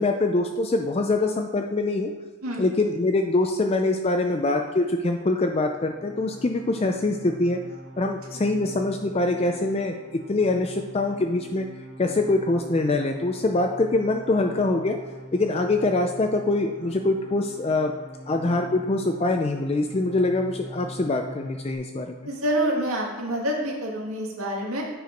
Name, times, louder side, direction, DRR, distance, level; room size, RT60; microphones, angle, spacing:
voice 1, 0.0-2.1 2.6-7.6 8.0-9.9 10.3-11.7 12.0-15.0 15.3-17.9 18.3-22.3, left 2 dB, 30° left, 4 dB, 0.4 m, -24 dB
sound 1, 5.5-21.8, right 1 dB, 60° right, 1.9 m, -43 dB
voice 2, 22.3-24.8, right 1 dB, 85° right, -1 dB, 1.9 m, -27 dB
9.2 x 4.7 x 5.1 m, 1.2 s
head